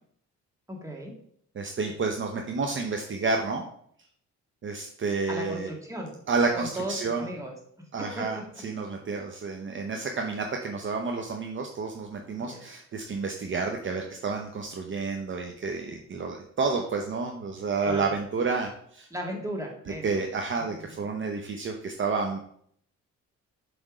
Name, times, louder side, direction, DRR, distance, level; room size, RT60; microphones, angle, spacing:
voice 1, 0.7-1.1 5.3-6.2 6.6-7.6 8.0-8.4 12.4-12.6 17.8-18.2 19.1-20.2 20.6-20.9, right 1 dB, 10° right, 0 dB, 1.9 m, -36 dB
voice 2, 1.6-3.6 4.6-5.7 6.3-7.3 7.9-8.4 8.6-19.1 20.0-22.4, right 4 dB, 40° right, 3 dB, 0.8 m, -30 dB
7.5 x 3.5 x 4.9 m, 0.65 s
cardioid pair, 90°, 30 cm